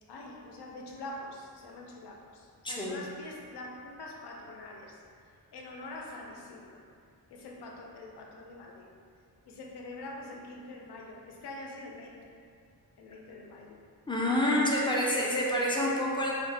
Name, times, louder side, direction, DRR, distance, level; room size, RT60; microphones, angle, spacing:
voice 1, 0.1-5.0 5.5-6.8 7.3-8.9 9.4-12.2 13.0-13.8 14.4-14.7, left 2 dB, 90° left, 0 dB, 0.5 m, -45 dB
voice 2, 2.6-3.0 14.1-16.3, left 1 dB, 15° left, -4 dB, 0.3 m, -27 dB
2.6 x 2.1 x 3.2 m, 2.2 s
wide cardioid pair, 120°, 38 cm